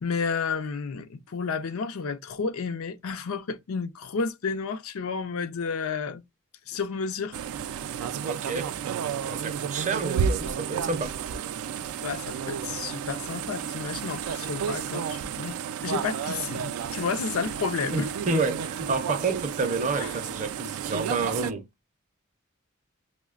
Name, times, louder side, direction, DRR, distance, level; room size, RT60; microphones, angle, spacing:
voice 1, 0.0-6.2 6.7-7.4 12.0-18.1 20.0-20.1, left 5 dB, 80° left, 0.5 m, -31 dB
sound 1, 7.3-21.5, right 7 dB, 90° right, 0.3 m, -32 dB
voice 2, 8.2-8.8 9.2-11.2 17.9-21.7, right 3 dB, 35° right, 0.5 m, -29 dB
5.4 x 2.1 x 2.3 m
head